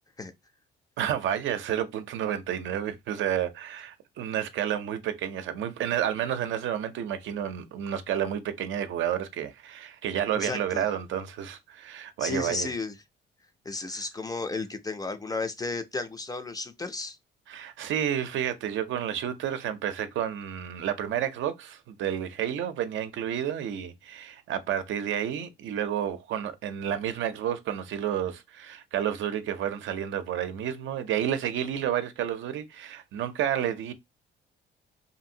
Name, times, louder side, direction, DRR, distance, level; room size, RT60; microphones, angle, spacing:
voice 1, 1.0-12.7 13.9-14.0 17.5-33.9, right 10 dB, 75° right, 0.5 m, -30 dB
voice 2, 10.3-10.9 12.2-12.9 13.7-17.2, left 3 dB, 20° left, 0.4 m, -33 dB
2.7 x 2.5 x 2.7 m
cardioid pair, 90°, 20 cm